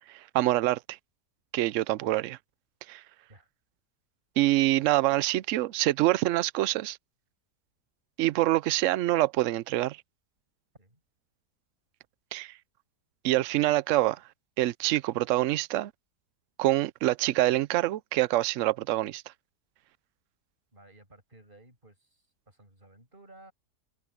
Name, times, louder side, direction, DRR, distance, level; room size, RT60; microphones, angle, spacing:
voice 1, 0.1-1.0 1.5-2.4 2.9-3.0 4.4-7.0 8.2-10.0 12.3-12.5 13.2-14.2 14.6-15.9 16.6-19.2, right 16 dB, 70° right, 0.7 m, -25 dB
voice 2, 20.7-23.5, right 2 dB, 30° right, 6.7 m, -55 dB
omnidirectional pair, 1.7 m